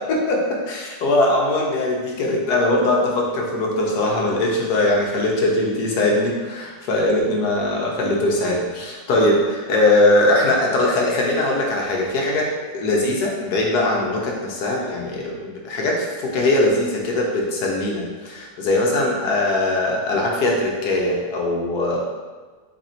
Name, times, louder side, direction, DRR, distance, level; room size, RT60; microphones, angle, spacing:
voice 1, 0.1-22.0, left 2 dB, 75° left, -2 dB, 1.4 m, -21 dB
4.4 x 2.6 x 4.3 m, 1.4 s
omnidirectional pair, 1.7 m